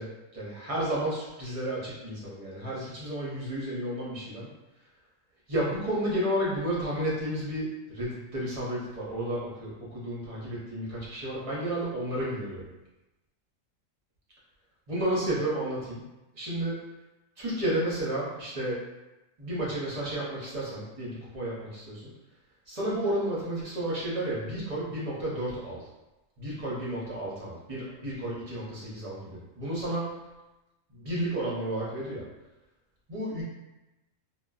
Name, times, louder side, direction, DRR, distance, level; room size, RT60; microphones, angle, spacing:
voice 1, 0.0-4.5 5.5-12.6 14.9-16.0 16.3-16.8 17.4-18.8 19.4-22.1 22.7-25.8 26.4-30.1 30.9-32.2 33.1-33.4, right 1 dB, 35° right, -7 dB, 0.6 m, -32 dB
2.5 x 2.2 x 2.3 m, 1.0 s
omnidirectional pair, 1.4 m